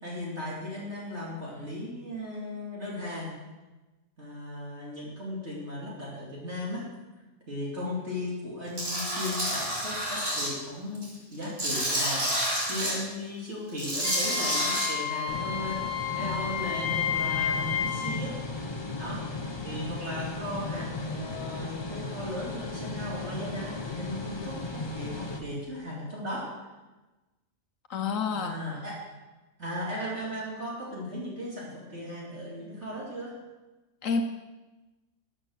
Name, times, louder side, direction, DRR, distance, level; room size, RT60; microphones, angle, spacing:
voice 1, 0.0-3.3 4.2-6.8 7.5-12.3 12.7-18.4 19.0-19.2 19.6-26.5 28.3-28.9 29.6-33.3, left 1 dB, 55° right, -5 dB, 3.0 m, -36 dB
Tools, 8.8-10.5 10.9-12.9 13.7-14.9, equal, 85° right, 4.1 m, -29 dB
Wind instrument woodwind instrument, 14.0-18.1, left 8 dB, 40° left, 3.8 m, -31 dB
sound 1, 15.3-25.4, left 2 dB, 20° left, 1.0 m, -36 dB
voice 2, 27.9-28.6 34.0-34.2, left 5 dB, 75° left, 5 dB, 1.3 m, -28 dB
13.5 x 7.6 x 6.4 m, 1.1 s
omnidirectional pair, 1.4 m